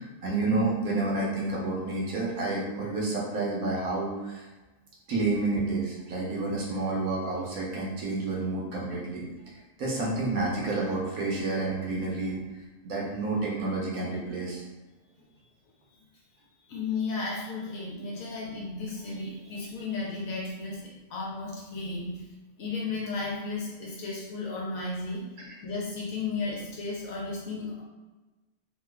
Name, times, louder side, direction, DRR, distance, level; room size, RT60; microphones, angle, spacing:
voice 1, 0.0-4.1 5.1-9.2 9.8-12.3 12.8-14.6 25.4-25.6, right 2 dB, 65° right, -4 dB, 1.1 m, -29 dB
voice 2, 16.7-22.2 22.6-25.3 25.6-27.8, left 3 dB, 65° left, -3 dB, 1.0 m, -34 dB
3.0 x 2.3 x 3.3 m, 1.2 s
omnidirectional pair, 1.7 m